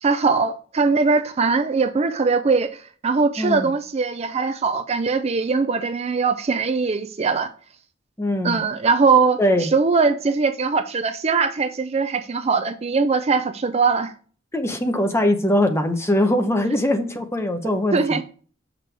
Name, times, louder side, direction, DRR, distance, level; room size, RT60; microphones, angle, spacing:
voice 1, 0.0-7.5 8.4-14.1 17.9-18.2, right 4 dB, 30° right, 0.4 m, -21 dB
voice 2, 3.4-3.7 8.2-8.6 9.4-9.7 14.5-18.2, left 1 dB, 15° left, 0.7 m, -21 dB
6.4 x 6.0 x 3.3 m
head